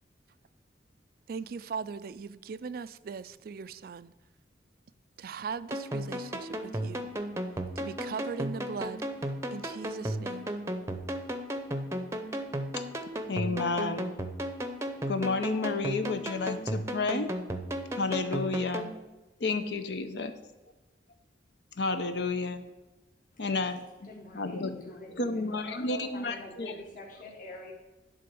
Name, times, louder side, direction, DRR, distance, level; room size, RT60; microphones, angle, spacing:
voice 1, 1.3-4.1 5.2-7.1 7.8-10.5, right 5 dB, 50° right, 0.3 m, -39 dB
sound 1, 5.7-18.9, equal, 15° right, 0.7 m, -35 dB
voice 2, 13.0-14.1 15.1-17.3 18.0-18.9 19.4-20.3 21.8-22.6 23.4-24.1 24.3-26.7, left 3 dB, 70° left, 0.7 m, -31 dB
voice 3, 24.0-27.7, left 3 dB, 45° left, 1.5 m, -46 dB
11.0 x 3.8 x 6.8 m
head